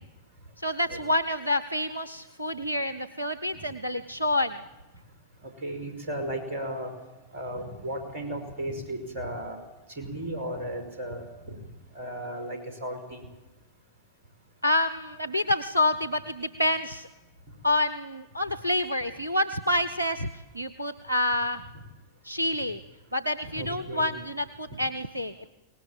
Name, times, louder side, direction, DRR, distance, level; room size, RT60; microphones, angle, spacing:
voice 1, 0.6-4.6 14.6-17.1 17.6-21.6 22.2-22.8 23.1-25.5, left 1 dB, 85° right, 11 dB, 0.8 m, -28 dB
voice 2, 5.4-6.9 7.3-9.6 10.0-11.6 11.9-13.2 23.4-24.1, right 1 dB, 50° right, 6 dB, 5.2 m, -35 dB
23.5 x 18.5 x 9.0 m, 1.1 s
figure-of-eight pair, 90°, 0 cm